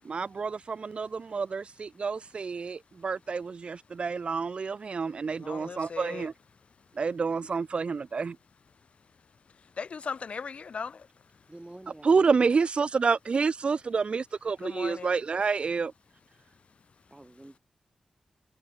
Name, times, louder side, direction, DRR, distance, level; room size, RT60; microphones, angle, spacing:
voice 1, 0.0-6.3 7.0-8.4 12.0-15.9, right 5 dB, 55° right, 0.6 m, -28 dB
voice 2, 5.3-6.3 9.5-11.4 14.6-15.2, left 5 dB, 65° left, 1.7 m, -39 dB
voice 3, 11.5-12.3 17.1-17.6, right 1 dB, 15° right, 5.9 m, -48 dB
wide cardioid pair, 95°, 2 cm